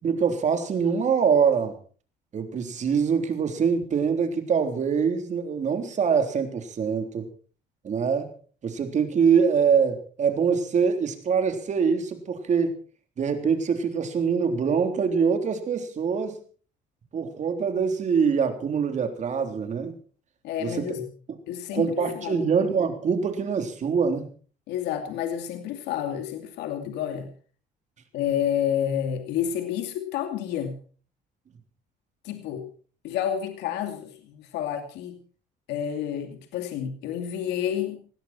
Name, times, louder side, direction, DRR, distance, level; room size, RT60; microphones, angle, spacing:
voice 1, 0.0-1.8 2.3-7.3 7.8-8.3 8.6-12.7 13.2-16.4 17.1-19.9 20.6-21.0 21.7-24.3, right 6 dB, 45° right, 6 dB, 3.7 m, -24 dB
voice 2, 20.4-21.1 21.5-22.5 24.7-27.3 28.1-30.8 32.2-32.7 33.0-35.2 35.7-38.0, left 9 dB, 85° left, 6 dB, 2.6 m, -29 dB
19.0 x 16.5 x 4.4 m, 0.41 s
cardioid pair, 110°, 17 cm